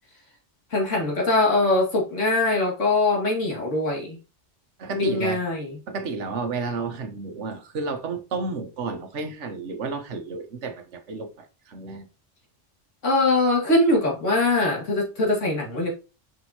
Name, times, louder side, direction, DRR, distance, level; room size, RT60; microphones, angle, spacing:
voice 1, 0.7-4.2 4.9-5.8 13.0-15.9, left 2 dB, 85° left, 2.5 m, -22 dB
voice 2, 4.8-5.4 5.9-12.1, right 4 dB, 75° right, 1.3 m, -31 dB
6.2 x 5.9 x 2.9 m
omnidirectional pair, 1.2 m